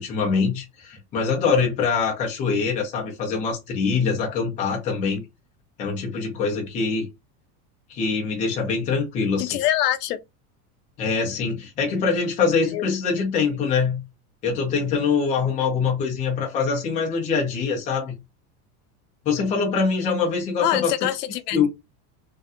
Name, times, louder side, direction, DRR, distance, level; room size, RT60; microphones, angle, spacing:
voice 1, 0.0-5.2 5.8-7.1 7.9-9.6 11.0-14.0 14.4-18.1 19.3-20.9 21.5-21.7, left 5 dB, 15° left, 0.5 m, -24 dB
voice 2, 9.4-10.2 12.7-12.8 20.6-21.7, left 13 dB, 75° left, 0.6 m, -24 dB
2.7 x 2.2 x 3.5 m
supercardioid pair, 175°, 47 cm